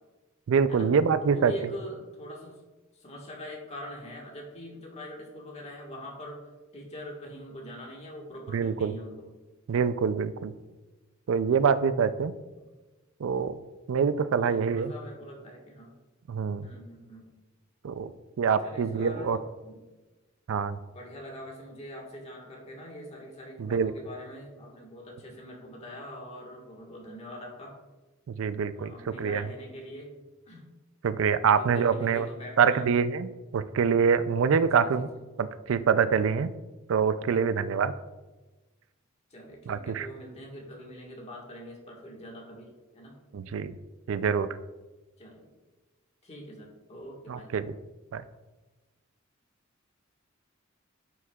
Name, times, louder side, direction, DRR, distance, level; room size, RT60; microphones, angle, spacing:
voice 1, 0.5-1.5 8.5-8.9 9.7-10.5 11.3-12.3 13.2-13.6 13.9-14.9 16.3-16.7 17.8-18.1 18.4-19.4 20.5-20.8 23.6-23.9 28.3-29.5 31.0-32.3 32.6-35.1 35.4-36.5 36.9-37.9 39.7-40.1 43.3-43.7 44.1-44.5 47.3-47.7 48.1-48.2, right 6 dB, 65° right, 14 dB, 0.4 m, -25 dB
voice 2, 1.2-2.6 3.0-6.4 6.7-9.2 14.4-15.9 16.6-17.3 18.6-19.8 20.9-27.7 28.7-30.1 30.5-30.6 31.5-32.9 34.6-35.0 39.3-42.7 42.9-43.1 45.2-45.5 46.2-47.5, equal, 30° left, -1 dB, 1.5 m, -43 dB
9.3 x 6.1 x 2.3 m, 1.2 s
head